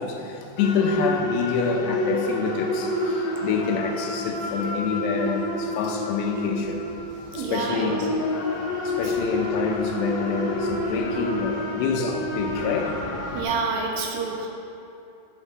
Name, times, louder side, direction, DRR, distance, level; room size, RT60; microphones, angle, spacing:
voice 1, 0.0-6.8 7.3-8.1 8.8-13.0, left 5 dB, 90° left, 3 dB, 2.9 m, -27 dB
sound 1, 0.6-13.4, left 1 dB, 65° left, 1.8 m, -29 dB
voice 2, 7.3-7.9 13.4-14.5, right 4 dB, 75° right, 0 dB, 2.3 m, -27 dB
9.2 x 8.2 x 4.1 m, 2.7 s
omnidirectional pair, 4.8 m